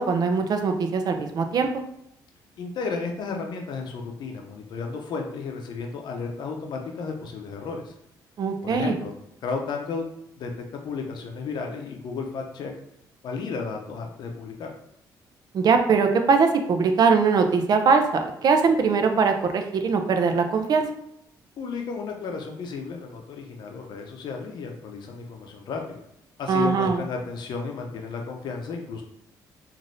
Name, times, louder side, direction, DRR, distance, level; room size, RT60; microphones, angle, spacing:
voice 1, 0.0-1.7 8.4-9.0 15.5-18.0 18.4-20.9 26.5-27.0, right 5 dB, 55° right, 6 dB, 0.5 m, -21 dB
voice 2, 2.6-7.9 8.6-9.1 9.4-10.1 10.4-12.7 13.2-14.7 21.6-26.0 26.4-29.0, left 4 dB, 65° left, 2 dB, 0.6 m, -33 dB
3.2 x 2.5 x 2.6 m, 0.75 s
cardioid pair, 85°, 8 cm